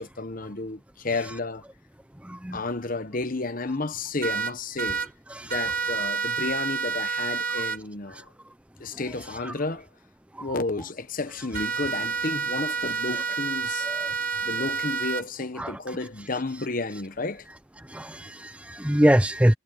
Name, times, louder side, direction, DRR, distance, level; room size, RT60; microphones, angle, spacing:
voice 1, 0.0-1.6 2.5-5.0 5.5-8.3 8.8-9.9 10.4-13.9 14.4-17.5, left 3 dB, 40° left, 1.1 m, -32 dB
voice 2, 2.2-2.6 5.4-5.5 13.9-14.1 15.6-15.7 17.9-19.5, equal, 5° right, 0.6 m, -23 dB
sound 1, 4.2-5.1 5.5-7.8 11.5-15.2, right 5 dB, 45° right, 1.4 m, -29 dB
head